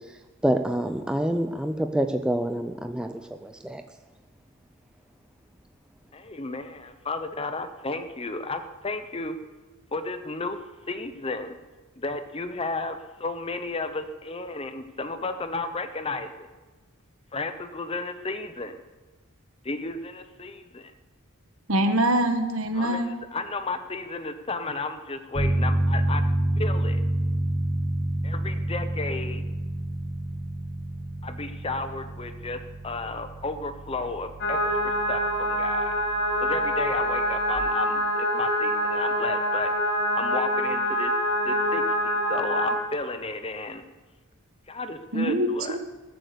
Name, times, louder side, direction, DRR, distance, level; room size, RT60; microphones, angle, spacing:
voice 1, 0.4-3.1 3.4-3.8, right 1 dB, 5° right, 6 dB, 0.5 m, -26 dB
voice 2, 6.1-9.4 9.9-10.6 10.9-11.5 12.0-16.5 17.3-18.8 19.6-20.9 22.7-26.2 26.6-27.0 28.2-29.4 31.2-35.9 36.4-39.7 40.1-41.1 41.4-43.8 44.7-45.8, left 3 dB, 25° left, 9 dB, 0.8 m, -33 dB
voice 3, 21.7-23.1 45.1-45.8, right 1 dB, 70° right, 6 dB, 1.5 m, -24 dB
Piano, 25.3-37.6, right 1 dB, 30° right, 1.4 m, -29 dB
sound 1, 34.4-42.8, equal, 50° left, 1.7 m, -25 dB
20.0 x 7.8 x 6.9 m, 1.2 s
head